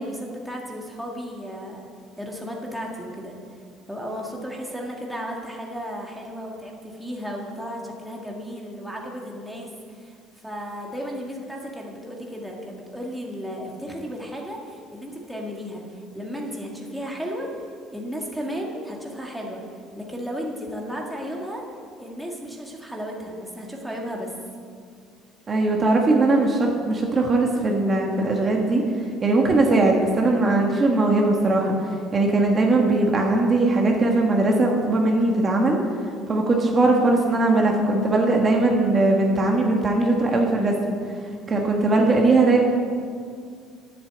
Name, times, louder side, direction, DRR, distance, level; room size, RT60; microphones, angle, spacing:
voice 1, 0.0-1.9 2.2-3.6 3.9-10.2 10.4-17.7 17.9-21.6 22.0-24.3, equal, ahead, -1 dB, 1.8 m, -34 dB
voice 2, 25.5-35.8 36.3-41.0 41.5-42.6, right 2 dB, 25° right, 0 dB, 1.5 m, -20 dB
10.5 x 8.2 x 8.0 m, 2.2 s
cardioid pair, 125°, 0 cm